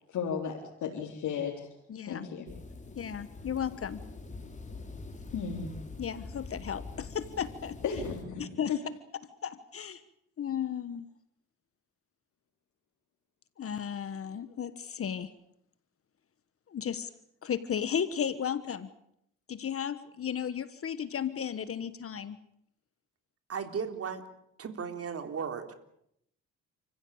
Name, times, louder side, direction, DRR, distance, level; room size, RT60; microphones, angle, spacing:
voice 1, 0.1-1.7 2.0-2.5 5.3-5.8 7.8-8.8, left 6 dB, 75° left, 0 dB, 3.9 m, -34 dB
voice 2, 1.9-2.3 3.0-4.0 6.0-7.8 8.4-8.7 9.4-10.0 10.4-11.1 13.6-15.3 16.7-17.1 17.4-18.9 19.5-22.4, left 8 dB, 50° left, 13 dB, 1.4 m, -34 dB
sound 1, 2.5-8.2, left 3 dB, 25° left, 4.0 m, -44 dB
voice 3, 23.5-24.2 24.6-25.7, right 6 dB, 50° right, 8 dB, 3.5 m, -35 dB
30.0 x 15.5 x 8.8 m, 0.75 s
cardioid pair, 90°, 30 cm